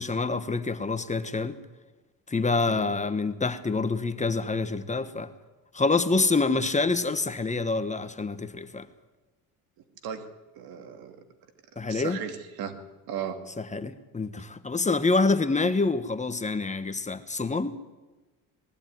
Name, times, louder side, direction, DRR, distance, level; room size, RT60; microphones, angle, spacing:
voice 1, 0.0-1.6 2.3-5.3 5.7-8.9 11.8-12.2 13.7-17.7, left 3 dB, 20° left, 1.3 m, -26 dB
voice 2, 10.5-11.2 11.8-12.7 13.1-13.4, right 8 dB, 80° right, 2.5 m, -36 dB
20.5 x 15.0 x 9.4 m
cardioid pair, 100°, 36 cm